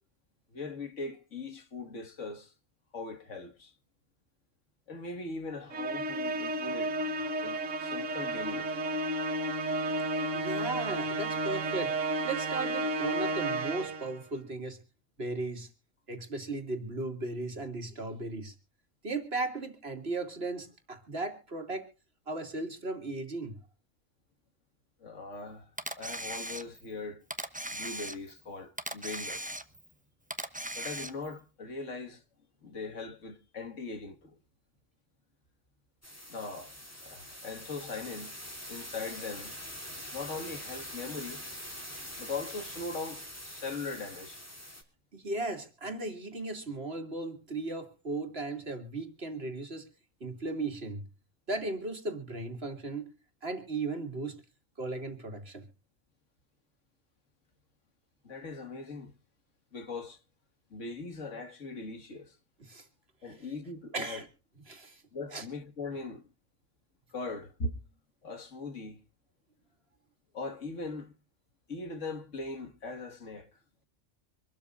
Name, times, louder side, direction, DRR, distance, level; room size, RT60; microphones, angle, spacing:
voice 1, 0.5-2.5 2.9-3.7 4.9-7.0 7.4-8.9 25.0-27.2 27.7-29.4 30.8-32.2 32.6-34.4 36.3-36.8 37.0-38.3 38.7-39.5 40.1-41.4 42.2-44.4 58.2-59.1 59.7-60.2 60.7-62.3 63.2-64.2 65.1-66.3 67.1-67.8 68.2-69.0 70.3-71.1 71.7-73.5, left 3 dB, 75° left, 2.2 m, -40 dB
Musical instrument, 5.7-14.2, right 2 dB, 80° right, 1.6 m, -32 dB
voice 2, 10.3-12.0 12.2-14.8 15.2-15.7 16.1-18.5 19.0-21.9 22.3-23.5 45.1-49.9 50.2-51.1 51.5-53.1 53.4-54.4 54.8-55.6 62.6-62.9 63.2-63.5 63.9-64.2 64.7-65.0 65.3-65.4, right 3 dB, 55° right, 2.7 m, -36 dB
Camera, 25.8-26.9 27.3-28.4 28.8-29.9 30.3-31.4, right 1 dB, 5° right, 0.9 m, -38 dB
sound 1, 36.0-44.8, equal, 10° left, 3.1 m, -44 dB
25.0 x 13.0 x 2.5 m
omnidirectional pair, 1.3 m